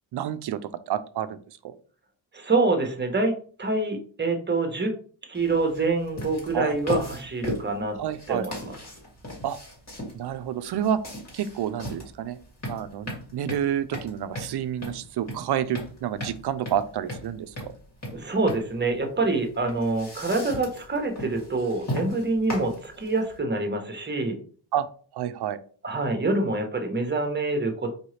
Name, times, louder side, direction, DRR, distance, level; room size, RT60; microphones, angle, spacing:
voice 1, 0.1-0.6 0.9-1.4 1.6-1.7 6.5-6.8 8.0-8.5 9.4-9.6 10.1-11.0 11.3-12.4 12.7-17.5 24.7-24.9 25.1-25.6, right 10 dB, 55° right, 13 dB, 0.5 m, -29 dB
voice 2, 2.3-4.9 5.3-8.0 8.3-8.8 18.1-24.4 25.8-27.9, right 3 dB, 25° right, 4 dB, 1.0 m, -26 dB
sound 1, 5.3-23.4, left 1 dB, 35° left, 2.1 m, -37 dB
4.8 x 2.6 x 3.2 m, 0.43 s
cardioid pair, 90°, 46 cm